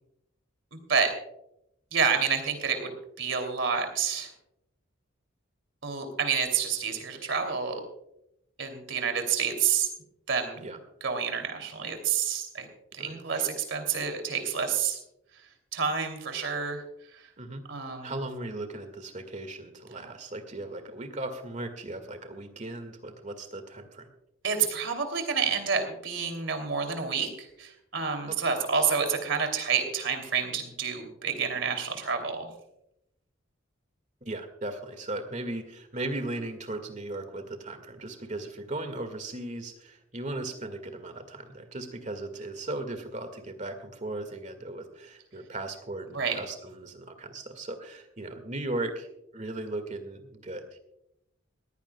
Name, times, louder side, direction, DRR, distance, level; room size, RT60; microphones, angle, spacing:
voice 1, 0.7-1.1 1.9-4.3 5.8-7.8 8.6-9.9 10.3-10.6 11.0-12.7 12.9-15.0 15.7-16.8 17.7-18.1 24.4-32.5 46.1-46.4, right 6 dB, 65° right, 5 dB, 2.9 m, -29 dB
voice 2, 13.0-13.5 17.4-17.6 18.0-24.1 28.3-28.5 34.3-49.1 49.3-50.8, right 2 dB, 35° right, 7 dB, 1.9 m, -37 dB
20.5 x 15.5 x 2.3 m, 0.82 s
head